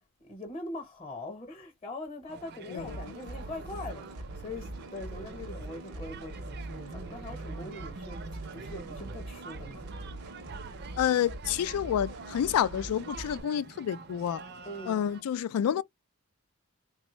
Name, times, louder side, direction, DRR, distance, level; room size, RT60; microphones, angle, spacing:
voice 1, 0.2-9.9 14.7-15.0, left 2 dB, 25° left, 0.8 m, -42 dB
sound 1, 2.3-15.2, right 4 dB, 50° right, 0.4 m, -47 dB
sound 2, 2.8-13.4, right 2 dB, 90° right, 0.7 m, -42 dB
voice 2, 11.0-14.4 14.9-15.8, left 9 dB, 90° left, 0.3 m, -29 dB
3.4 x 2.1 x 3.0 m
head